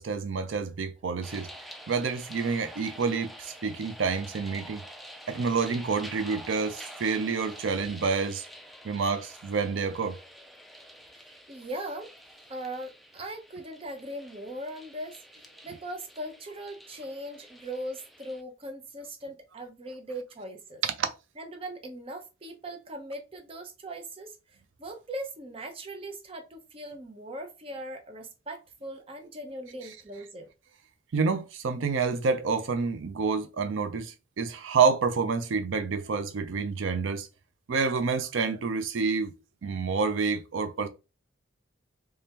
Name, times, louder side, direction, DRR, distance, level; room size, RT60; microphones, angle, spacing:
voice 1, 0.0-1.5 1.9-4.8 5.3-8.5 8.8-10.2 21.0-21.1 31.1-37.3 37.7-39.3 39.6-40.9, right 5 dB, 85° right, 0.5 m, -28 dB
sound 1, 1.2-18.4, equal, ahead, 0.4 m, -48 dB
voice 2, 11.3-12.1 12.5-20.8 21.4-30.5, right 1 dB, 30° right, 0.7 m, -40 dB
3.4 x 3.4 x 2.9 m
head